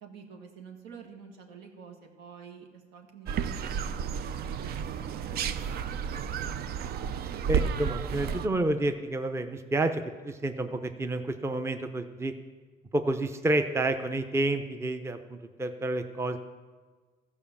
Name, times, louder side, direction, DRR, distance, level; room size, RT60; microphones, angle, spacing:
voice 1, 0.0-4.0 4.3-6.0, right 6 dB, 90° right, 2 dB, 1.8 m, -49 dB
sound 1, 3.3-8.5, right 7 dB, 70° right, 0.6 m, -32 dB
voice 2, 7.5-12.3 12.9-16.4, right 2 dB, 15° right, 8 dB, 0.7 m, -29 dB
14.5 x 5.4 x 7.1 m, 1.4 s
cardioid pair, 110°, 17 cm